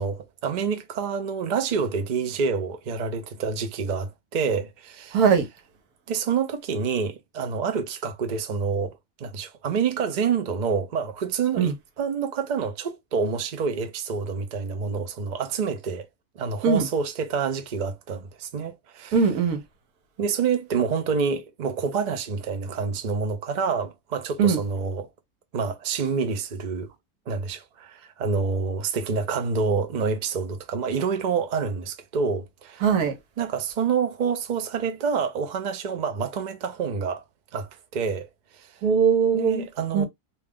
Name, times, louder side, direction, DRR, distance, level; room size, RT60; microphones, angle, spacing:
voice 1, 0.0-5.2 6.1-16.1 16.4-19.1 20.2-25.1 25.5-26.9 27.3-32.8 33.4-37.2 37.5-38.3 38.6-38.7 39.3-40.1, right 5 dB, 55° right, 0.5 m, -27 dB
voice 2, 5.1-5.5 11.6-11.7 16.6-16.9 19.1-19.6 24.4-24.6 32.8-33.2 38.8-39.7 39.9-40.1, right 6 dB, 80° right, 1.3 m, -20 dB
2.8 x 2.3 x 3.4 m
omnidirectional pair, 1.6 m